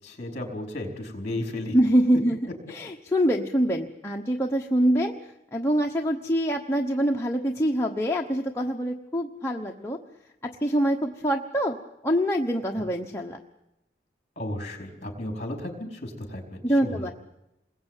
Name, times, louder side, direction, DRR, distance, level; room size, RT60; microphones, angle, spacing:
voice 1, 0.0-1.8 14.4-17.1, left 1 dB, 35° left, 4 dB, 4.5 m, -34 dB
voice 2, 1.7-2.4 2.7-10.0 10.4-11.8 12.0-13.4 16.6-17.1, equal, 15° left, 0 dB, 1.1 m, -25 dB
28.0 x 21.0 x 9.1 m, 0.92 s
head